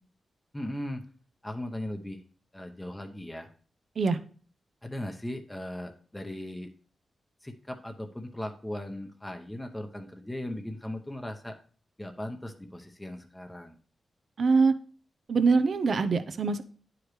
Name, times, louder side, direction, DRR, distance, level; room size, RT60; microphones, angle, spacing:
voice 1, 0.5-1.0 1.4-2.2 2.5-3.5 4.8-6.7 7.4-11.6 12.0-13.8, left 1 dB, 10° left, 4 dB, 0.7 m, -38 dB
voice 2, 14.4-14.7 15.3-16.6, right 4 dB, 60° right, 11 dB, 0.6 m, -23 dB
10.5 x 4.9 x 3.1 m, 0.42 s
cardioid pair, 95°, 0 cm